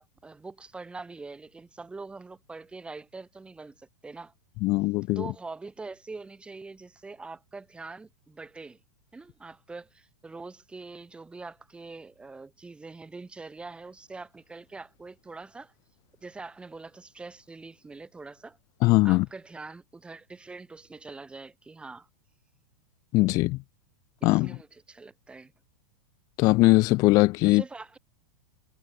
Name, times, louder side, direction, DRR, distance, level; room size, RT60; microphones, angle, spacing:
voice 1, 0.0-4.3 5.2-8.8 9.1-15.7 16.2-18.6 19.0-22.1 24.2-25.5 27.4-28.0, right 3 dB, 5° right, 7.4 m, -43 dB
voice 2, 4.6-5.3 18.8-19.3 23.1-23.6 24.2-24.6 26.4-27.6, left 21 dB, 20° left, 0.4 m, -21 dB
supercardioid pair, 175°, 17 cm